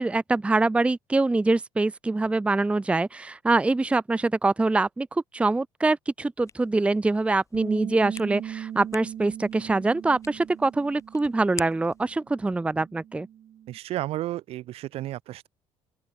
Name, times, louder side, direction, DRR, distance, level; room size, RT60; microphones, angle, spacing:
voice 1, 0.0-13.3, right 3 dB, 10° right, 0.6 m, -24 dB
sound 1, 6.4-12.1, left 5 dB, 30° left, 2.0 m, -46 dB
Bass guitar, 7.5-13.8, right 10 dB, 55° right, 5.5 m, -39 dB
voice 2, 13.7-15.5, right 15 dB, 70° right, 2.3 m, -32 dB
open air
cardioid pair, 105°, 10 cm